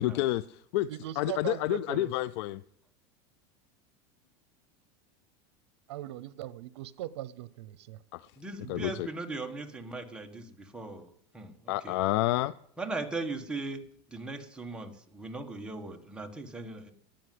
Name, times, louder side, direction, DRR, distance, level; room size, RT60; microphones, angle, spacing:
voice 1, 0.0-0.9 1.2-2.6 8.1-8.2 8.7-9.1 11.7-12.5, left 16 dB, 70° left, 17 dB, 0.4 m, -29 dB
voice 2, 0.9-2.1 5.9-8.0 8.6-8.9, right 14 dB, 90° right, 19 dB, 0.7 m, -39 dB
voice 3, 8.4-11.1 11.3-11.9 12.8-13.8 14.1-16.9, right 2 dB, 5° right, 3 dB, 1.4 m, -39 dB
13.0 x 8.9 x 7.7 m, 0.67 s
supercardioid pair, 140°, 14 cm